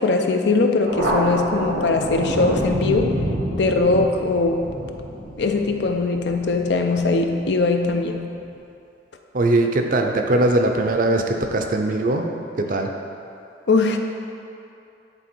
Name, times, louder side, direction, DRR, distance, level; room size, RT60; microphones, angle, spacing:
voice 1, 0.0-3.1 3.6-4.7 5.4-8.3 13.7-14.0, left 3 dB, 70° left, 4 dB, 0.6 m, -20 dB
Thunder, 0.9-7.9, right 1 dB, 85° right, 1.4 m, -28 dB
voice 2, 9.3-12.3 12.6-12.9, right 2 dB, 50° right, 4 dB, 0.6 m, -20 dB
9.8 x 3.9 x 4.5 m, 2.6 s
head